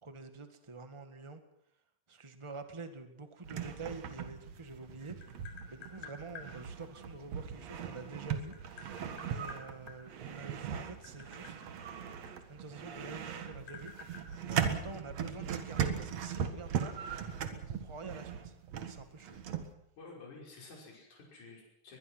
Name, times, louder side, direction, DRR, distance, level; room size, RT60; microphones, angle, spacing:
voice 1, 0.0-1.4 2.1-8.5 9.2-11.6 12.5-16.9 17.5-19.4, right 3 dB, 25° right, 8 dB, 0.6 m, -47 dB
sound 1, 3.4-19.7, right 8 dB, 55° right, 2.4 m, -39 dB
Tap, 4.6-6.5 7.8-10.0 10.7-12.9 13.2-15.2, left 7 dB, 70° left, 6.0 m, -51 dB
voice 2, 20.0-22.0, left 3 dB, 55° left, -2 dB, 7.0 m, -52 dB
22.5 x 21.0 x 6.2 m, 0.78 s
omnidirectional pair, 4.1 m